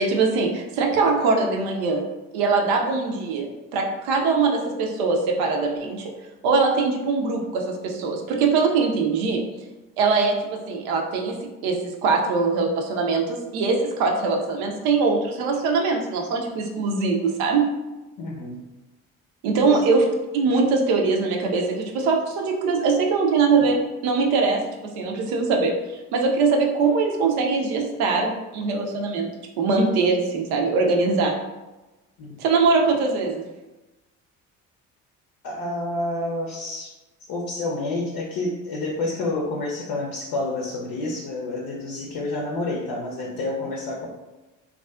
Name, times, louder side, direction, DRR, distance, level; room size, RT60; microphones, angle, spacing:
voice 1, 0.0-2.0 2.3-6.1 6.4-9.4 10.0-11.4 11.6-17.7 19.4-20.1 20.3-24.6 25.0-25.7 26.1-29.3 29.6-31.3 32.4-33.4, right 4 dB, 65° right, 2 dB, 0.6 m, -22 dB
voice 2, 18.2-18.6 19.6-19.8 32.2-32.4 35.4-36.9 37.3-44.1, left 2 dB, 55° left, -2 dB, 0.6 m, -29 dB
2.4 x 2.3 x 2.3 m, 1.1 s
hypercardioid pair, 50°, 40 cm